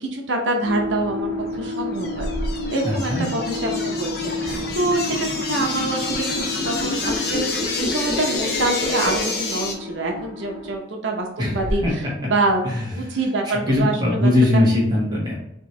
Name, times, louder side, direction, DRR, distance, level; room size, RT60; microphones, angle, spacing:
voice 1, 0.0-2.3 2.7-4.1 4.4-11.8 12.2-12.6 12.9-14.3, right 2 dB, 85° right, 1 dB, 0.7 m, -25 dB
sound 1, 0.6-10.8, left 2 dB, 90° left, 0.8 m, -31 dB
sound 2, 1.2-1.4 1.9-3.7 4.4-5.1 9.6-9.7 10.2-10.3 10.7-10.8 11.2-11.3 11.5-11.9, equal, 35° left, 0.4 m, -32 dB
sound 3, 1.7-9.7, left 3 dB, 55° left, 0.7 m, -27 dB
voice 2, 2.8-3.3 11.4-11.9 12.2-12.3 12.6-13.2 13.4-15.4, left 2 dB, 25° right, -5 dB, 1.3 m, -21 dB
4.4 x 2.9 x 3.3 m, 0.80 s
head